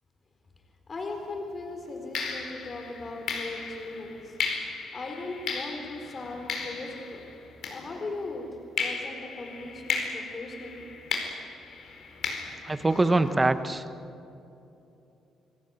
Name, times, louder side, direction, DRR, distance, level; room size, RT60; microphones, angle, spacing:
voice 1, 0.9-4.4 4.9-7.3 7.7-10.9, left 2 dB, 35° left, 4 dB, 4.2 m, -38 dB
sound 1, 1.0-1.2 2.1-8.3 8.8-13.5, left 5 dB, 65° left, 4.6 m, -36 dB
voice 2, 12.6-13.8, right 2 dB, 20° right, 10 dB, 1.4 m, -23 dB
28.5 x 17.5 x 9.6 m, 2.8 s
cardioid pair, 90°, 0 cm